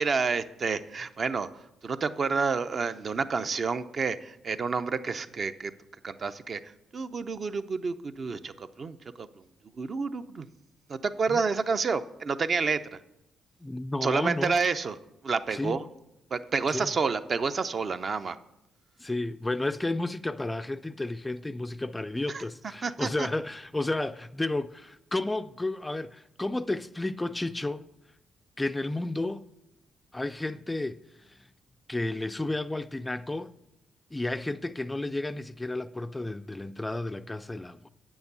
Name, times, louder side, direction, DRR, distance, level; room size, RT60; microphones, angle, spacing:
voice 1, 0.0-1.5 1.8-5.7 6.0-6.6 6.9-9.3 9.8-10.5 10.9-12.8 14.0-15.0 15.2-15.8 16.3-18.4 22.3-22.4 22.8-23.3, right 4 dB, 45° right, 0.5 m, -29 dB
voice 2, 13.6-14.6 15.5-15.8 16.7-16.9 19.0-27.9 28.6-29.4 30.1-31.0 31.3-31.4 31.9-33.5 34.1-37.9, left 2 dB, 15° left, 0.3 m, -32 dB
8.4 x 7.1 x 6.7 m
cardioid pair, 90°, 0 cm